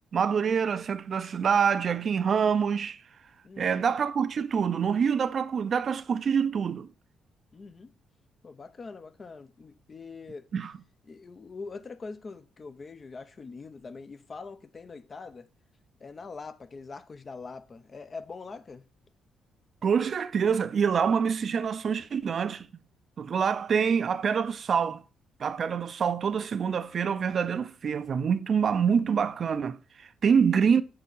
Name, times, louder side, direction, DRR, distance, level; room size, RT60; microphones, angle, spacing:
voice 1, 0.1-3.0 3.6-6.9 10.5-10.7 19.8-22.7 23.2-25.0 25.4-30.8, right 6 dB, 50° right, 0.5 m, -26 dB
voice 2, 3.4-3.9 7.5-7.9 8.4-10.5 11.1-15.5 16.0-18.8, left 4 dB, 35° left, 0.6 m, -43 dB
6.7 x 4.1 x 5.5 m
cardioid pair, 90°, 0 cm